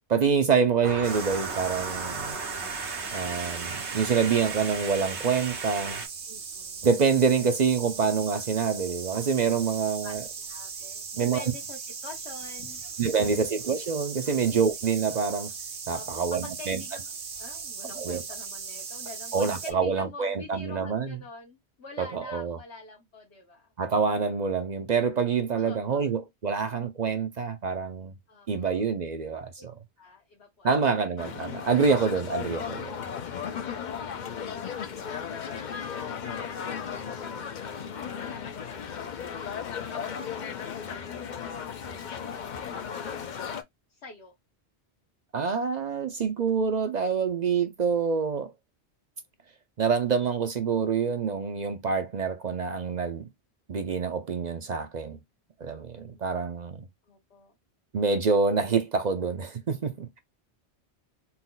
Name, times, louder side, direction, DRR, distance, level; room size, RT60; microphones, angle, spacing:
voice 1, 0.1-2.4 3.1-6.0 6.8-10.2 11.2-11.4 13.0-15.5 15.9-16.8 18.0-18.2 19.3-21.2 22.0-22.6 23.8-28.1 28.5-29.7 30.6-32.9 45.3-48.5 49.8-53.3 53.7-55.2 55.6-56.8 57.9-60.2, right 5 dB, 50° right, 0.6 m, -26 dB
sound 1, 0.8-6.1, right 4 dB, 90° right, 1.7 m, -36 dB
sound 2, 1.0-19.7, right 5 dB, 65° right, 1.1 m, -39 dB
voice 2, 6.3-6.9 9.5-9.6 10.0-12.8 14.2-14.4 15.9-17.1 17.4-23.7 25.5-26.1 28.3-28.8 30.0-30.9 32.9-33.3 35.3-39.5 39.8-43.5 43.9-44.3 55.6-56.5 57.0-57.5, left 3 dB, 75° left, 1.5 m, -46 dB
sound 3, 31.2-43.6, left 7 dB, 50° left, 0.7 m, -36 dB
4.3 x 2.3 x 3.8 m
omnidirectional pair, 1.1 m